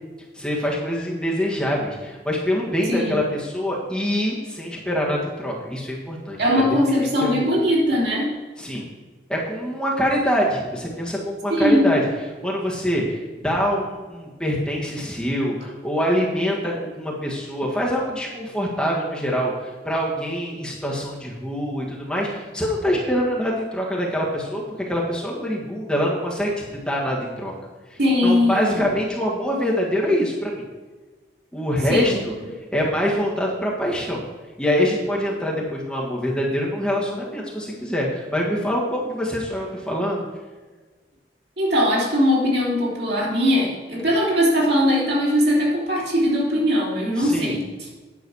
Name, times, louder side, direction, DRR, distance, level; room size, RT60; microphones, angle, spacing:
voice 1, 0.3-6.6 7.0-7.5 8.6-8.9 9.3-12.1 12.4-27.5 27.9-30.6 31.5-32.4 32.7-34.3 34.6-40.2 47.2-47.6, equal, 5° left, -4 dB, 1.6 m, -25 dB
voice 2, 6.4-8.3 11.5-11.9 28.0-28.9 31.9-32.2 41.6-47.6, equal, 70° right, -3 dB, 3.2 m, -20 dB
9.8 x 6.4 x 6.3 m, 1.3 s
head